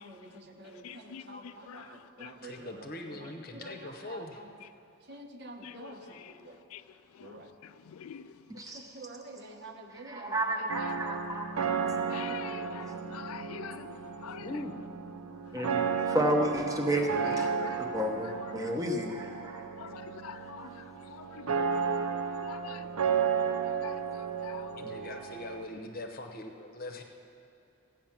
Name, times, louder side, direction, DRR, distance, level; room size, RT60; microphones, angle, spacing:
voice 1, 0.0-4.5 5.1-6.6 7.2-7.5 8.5-11.2, right 1 dB, 50° right, 1.0 m, -48 dB
voice 2, 0.8-2.3 4.6-4.7 5.6-6.3 6.7-6.8 7.1-8.4 10.6-11.0 12.1-14.6 15.5-16.1 17.2-17.8 18.2-18.8 19.8-21.9 22.2-22.9 23.7-24.8, left 8 dB, 75° left, 0.4 m, -46 dB
voice 3, 2.4-4.4 14.4-14.8 24.7-27.0, left 2 dB, 40° left, 0.9 m, -41 dB
voice 4, 10.1-11.7 15.5-17.5 17.8-19.7 20.6-20.7, right 1 dB, 15° right, 0.9 m, -31 dB
sound 1, 10.7-25.7, right 6 dB, 80° right, 0.6 m, -33 dB
14.5 x 8.6 x 6.0 m
head